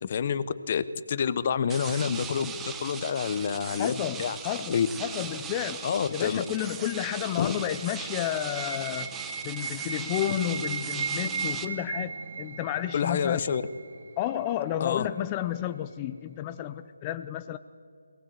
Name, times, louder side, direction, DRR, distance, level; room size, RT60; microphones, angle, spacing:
voice 1, 0.0-4.9 5.8-6.4 7.4-7.6 12.9-13.6 14.8-15.1, left 7 dB, 40° left, 15 dB, 1.0 m, -28 dB
sound 1, 1.7-11.7, right 7 dB, 10° right, 0.9 m, -39 dB
voice 2, 3.8-5.9 6.1-9.1 9.4-13.4 14.2-17.6, left 12 dB, 20° left, 10 dB, 0.6 m, -31 dB
sound 2, 5.4-14.4, right 5 dB, 45° right, 2.4 m, -37 dB
23.0 x 18.5 x 8.1 m, 2.5 s
figure-of-eight pair, 160°, 0 cm